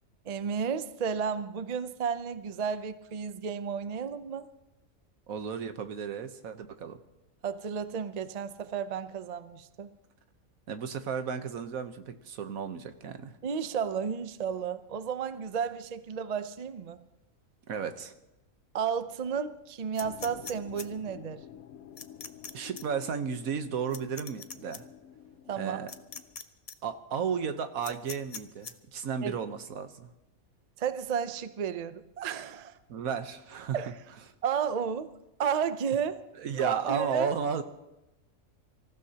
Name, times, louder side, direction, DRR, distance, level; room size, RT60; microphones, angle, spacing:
voice 1, 0.3-4.5 7.4-9.9 13.4-17.0 18.7-21.4 25.5-25.8 29.2-29.3 30.8-32.8 33.7-33.9 34.4-35.1 35.4-36.2 36.6-37.3, right 7 dB, 45° right, 12 dB, 0.5 m, -32 dB
voice 2, 5.3-7.0 10.7-13.4 17.7-18.1 22.5-24.8 25.6-25.9 26.8-30.1 32.9-33.8 36.4-37.6, right 6 dB, 80° right, 9 dB, 1.4 m, -33 dB
sound 1, 20.0-26.4, left 9 dB, 85° left, 1.1 m, -50 dB
sound 2, 20.0-20.9 22.0-22.5 22.8-22.9 23.9-24.8 25.9-26.4 26.7-26.8 27.8-28.7, left 5 dB, 45° left, 0.5 m, -41 dB
26.0 x 15.0 x 2.9 m, 0.96 s
omnidirectional pair, 1.4 m